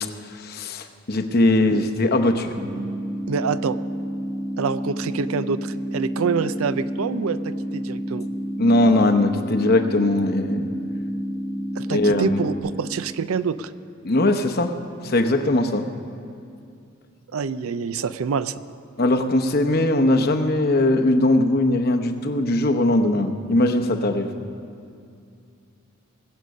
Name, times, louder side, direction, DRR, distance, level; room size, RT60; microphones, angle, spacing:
voice 1, 0.0-2.5 8.6-10.7 11.9-12.5 14.0-14.7 15.0-15.9 19.0-24.3, left 1 dB, 45° left, 6 dB, 0.8 m, -20 dB
sound 1, 2.6-12.6, equal, ahead, 1.2 m, -30 dB
voice 2, 3.3-3.8 4.6-8.3 11.8-13.7 17.3-18.5, right 5 dB, 75° right, 14 dB, 0.5 m, -26 dB
20.5 x 8.2 x 6.4 m, 2.4 s
head